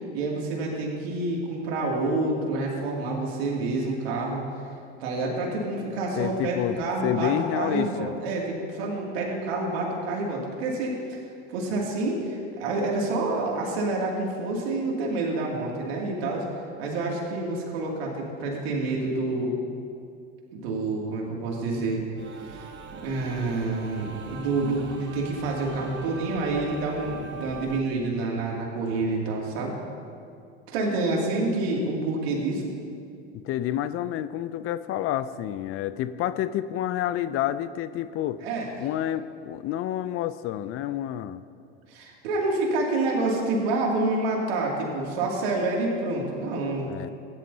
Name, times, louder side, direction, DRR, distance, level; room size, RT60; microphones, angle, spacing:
voice 1, 0.1-4.4 5.0-11.2 11.5-16.5 16.8-19.5 20.5-22.1 22.4-29.7 30.7-32.7 38.4-38.7 41.9-46.9, right 2 dB, 75° right, -2 dB, 2.6 m, -28 dB
voice 2, 6.2-8.1 33.4-38.4 38.8-41.4 46.9-47.1, left 12 dB, 45° left, 14 dB, 0.5 m, -29 dB
sound 1, 22.2-27.8, right 5 dB, 35° right, 1.2 m, -41 dB
16.0 x 10.5 x 2.8 m, 2.4 s
hypercardioid pair, 90°, 31 cm